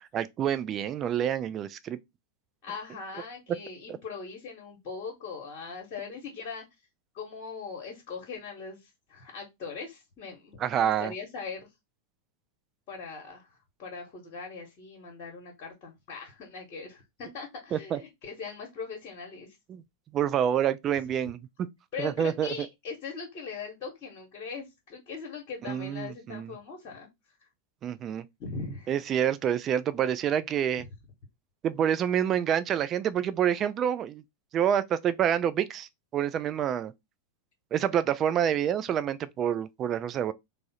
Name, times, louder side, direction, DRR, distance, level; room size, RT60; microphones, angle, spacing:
voice 1, 0.0-2.0 10.6-11.1 17.7-18.0 19.7-19.8 20.1-21.4 22.0-22.5 25.6-26.5 27.8-28.2 28.9-30.8 31.6-34.2 34.5-36.9 37.7-40.3, right 9 dB, 30° right, 0.3 m, -27 dB
voice 2, 2.6-6.6 7.1-11.7 12.9-19.5 21.9-27.1 28.4-28.9, left 5 dB, 40° left, 1.0 m, -40 dB
3.5 x 2.0 x 4.1 m
figure-of-eight pair, 90°, 0 cm